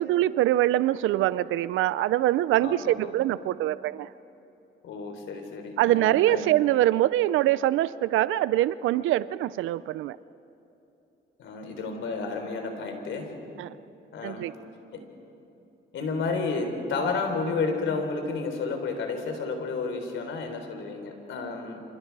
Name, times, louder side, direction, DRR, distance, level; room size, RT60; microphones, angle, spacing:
voice 1, 0.0-4.1 5.8-10.2 13.6-13.7 14.2-14.5, right 14 dB, 85° right, 17 dB, 0.5 m, -24 dB
voice 2, 2.6-3.1 4.8-6.4 11.4-13.3 14.1-14.5 14.9-15.0 15.9-21.8, left 4 dB, 75° left, 5 dB, 3.8 m, -31 dB
27.5 x 27.0 x 4.8 m, 2.9 s
cardioid pair, 90°, 20 cm